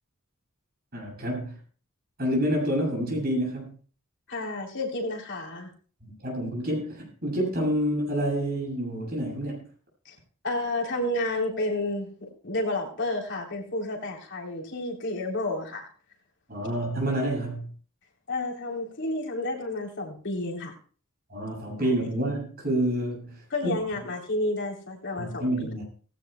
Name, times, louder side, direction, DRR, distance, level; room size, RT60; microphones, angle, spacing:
voice 1, 0.9-1.6 2.2-3.8 6.0-9.7 16.5-17.7 21.3-23.7 25.2-25.8, right 1 dB, 45° right, 0 dB, 7.5 m, -28 dB
voice 2, 4.3-5.7 10.0-10.1 10.4-15.9 18.3-20.7 21.8-21.9 23.5-25.8, left 2 dB, 55° left, 0 dB, 3.4 m, -31 dB
18.0 x 16.0 x 2.3 m, 0.41 s
head